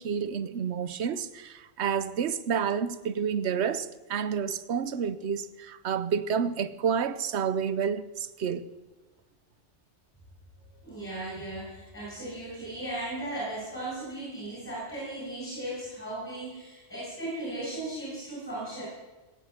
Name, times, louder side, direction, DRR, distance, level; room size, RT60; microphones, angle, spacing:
voice 1, 0.0-8.7, right 7 dB, 65° right, 1.0 m, -29 dB
voice 2, 10.8-18.8, right 1 dB, 10° left, 6.5 m, -36 dB
19.0 x 9.0 x 7.9 m
omnidirectional pair, 1.3 m